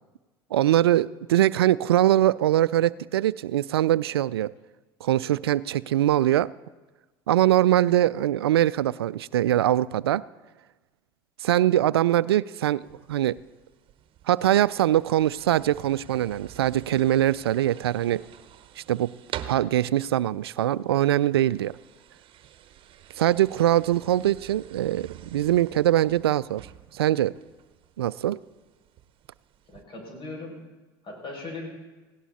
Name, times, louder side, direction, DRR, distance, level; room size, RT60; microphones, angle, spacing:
voice 1, 0.5-4.5 5.0-6.5 7.3-10.2 11.4-13.4 14.3-18.2 18.8-19.1 19.5-21.8 23.2-26.7 26.9-27.3 28.0-28.4, right 13 dB, 85° right, 19 dB, 0.4 m, -22 dB
sound 1, 12.8-29.8, right 11 dB, 45° right, 1.1 m, -47 dB
voice 2, 29.7-30.6 31.0-31.7, left 2 dB, 40° left, 0 dB, 6.6 m, -38 dB
18.0 x 17.0 x 4.1 m, 1.2 s
hypercardioid pair, 75°, 13 cm